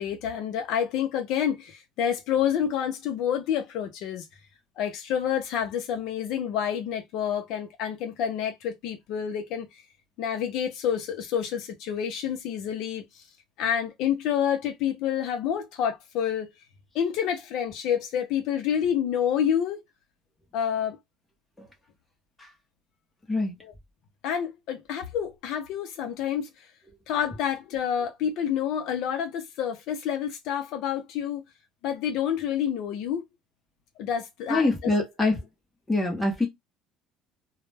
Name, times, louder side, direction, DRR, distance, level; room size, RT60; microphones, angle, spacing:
voice 1, 0.0-4.3 4.8-9.7 10.2-13.2 13.6-16.5 16.9-19.8 20.5-21.0 23.6-23.7 24.2-26.7 27.1-31.4 31.8-33.2 34.0-34.9, left 9 dB, 55° left, 0.5 m, -28 dB
voice 2, 34.5-35.4 35.9-36.5, left 2 dB, 5° left, 0.7 m, -24 dB
2.1 x 2.0 x 3.2 m
cardioid pair, 175°, 0 cm